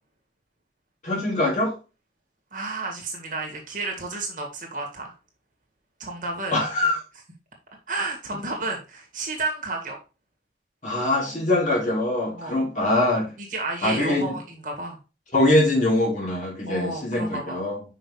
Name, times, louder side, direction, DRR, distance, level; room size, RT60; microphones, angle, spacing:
voice 1, 1.0-1.7 6.5-7.0 10.8-13.3 13.8-14.4 15.3-17.8, left 1 dB, 45° left, -3 dB, 2.7 m, -23 dB
voice 2, 2.5-5.1 6.0-6.6 7.9-10.0 12.3-12.7 13.4-15.0 16.7-17.6, right 2 dB, 50° right, 1 dB, 1.9 m, -31 dB
5.9 x 5.5 x 3.2 m, 0.31 s
head